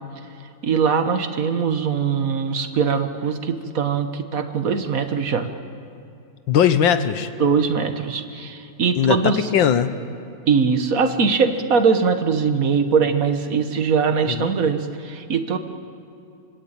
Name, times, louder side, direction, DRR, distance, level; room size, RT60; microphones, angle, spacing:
voice 1, 0.6-5.5 7.4-9.5 10.5-15.6, right 5 dB, 50° right, 8 dB, 1.7 m, -21 dB
voice 2, 6.5-7.3 9.0-9.9 14.3-14.5, left 8 dB, 80° left, 11 dB, 1.8 m, -19 dB
25.0 x 24.5 x 8.9 m, 2.5 s
omnidirectional pair, 2.0 m